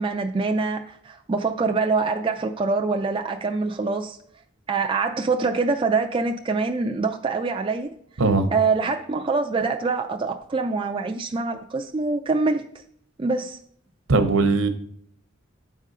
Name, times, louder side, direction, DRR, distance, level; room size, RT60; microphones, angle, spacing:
voice 1, 0.0-4.2 4.7-7.9 8.5-12.6 13.2-13.6, right 4 dB, 25° right, 3 dB, 0.3 m, -24 dB
voice 2, 14.1-14.7, right 3 dB, 65° right, 7 dB, 0.8 m, -19 dB
9.0 x 3.7 x 5.4 m, 0.66 s
head